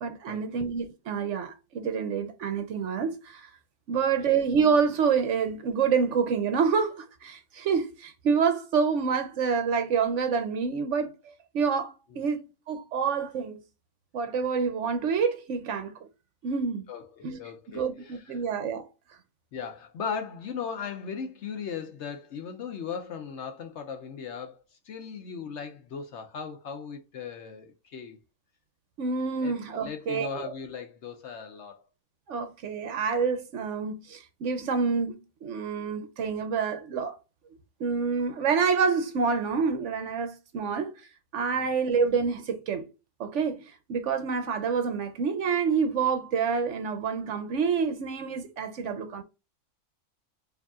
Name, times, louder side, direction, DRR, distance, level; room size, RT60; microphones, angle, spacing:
voice 1, 0.0-3.5 3.9-13.6 14.1-16.1 16.4-16.8 17.2-17.4 17.7-18.9 29.0-30.3 32.3-37.2 37.8-40.9 41.3-42.9 43.2-49.2, right 6 dB, 65° right, 0.8 m, -27 dB
voice 2, 3.9-4.4 12.1-12.2 16.9-18.4 19.5-28.2 29.4-31.8 40.6-40.7 41.5-41.7, left 6 dB, 65° left, 0.8 m, -38 dB
4.8 x 2.7 x 2.3 m
omnidirectional pair, 1.5 m